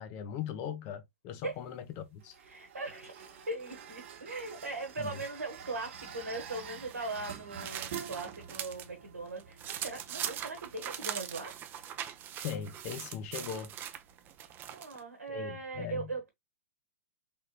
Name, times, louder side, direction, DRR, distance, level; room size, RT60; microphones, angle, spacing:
voice 1, 0.0-2.3 5.0-5.1 12.4-13.7 15.3-16.1, left 8 dB, 35° left, 0.5 m, -39 dB
sound 1, 1.3-14.7, right 8 dB, 55° right, 0.7 m, -49 dB
voice 2, 2.4-11.5 14.7-16.3, right 3 dB, 85° right, 1.0 m, -40 dB
sound 2, 6.7-8.9 9.3-15.0, right 10 dB, 25° right, 0.4 m, -41 dB
3.5 x 2.8 x 2.3 m
figure-of-eight pair, 110°, 8 cm